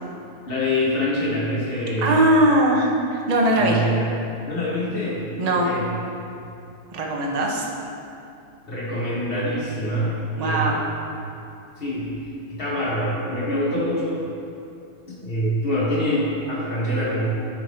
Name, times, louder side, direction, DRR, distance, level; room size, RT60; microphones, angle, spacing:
voice 1, 0.5-2.2 3.6-4.1 4.5-5.9 6.3-6.4 8.6-10.8 11.8-14.2 15.1-17.3, equal, 35° left, -7 dB, 1.7 m, -25 dB
voice 2, 2.0-3.8 5.4-5.7 6.9-7.7 10.4-10.8, right 1 dB, 40° right, -1 dB, 0.6 m, -20 dB
9.7 x 4.1 x 4.3 m, 2.7 s
omnidirectional pair, 1.8 m